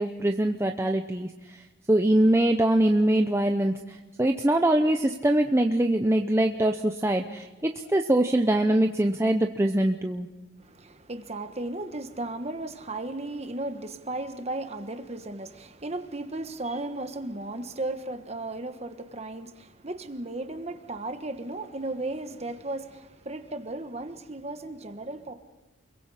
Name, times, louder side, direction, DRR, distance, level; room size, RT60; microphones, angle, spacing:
voice 1, 0.0-10.3, right 1 dB, 15° right, 0.7 m, -23 dB
voice 2, 10.6-25.3, right 2 dB, 30° right, 1.3 m, -35 dB
29.0 x 22.5 x 4.9 m
head